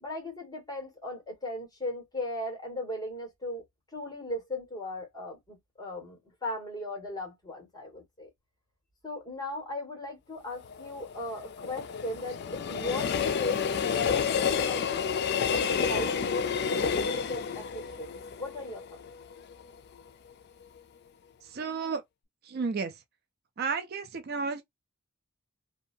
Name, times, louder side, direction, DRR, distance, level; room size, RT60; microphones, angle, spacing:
voice 1, 0.0-3.6 3.9-8.3 9.0-13.7 14.0-18.1 18.4-19.0, left 2 dB, 20° left, 1.5 m, -37 dB
Train, 10.5-19.6 20.0-20.1, left 6 dB, 55° left, 0.3 m, -30 dB
voice 2, 21.4-22.0 22.4-23.0 23.6-24.6, right 5 dB, 50° right, 0.4 m, -32 dB
2.7 x 2.3 x 2.5 m
head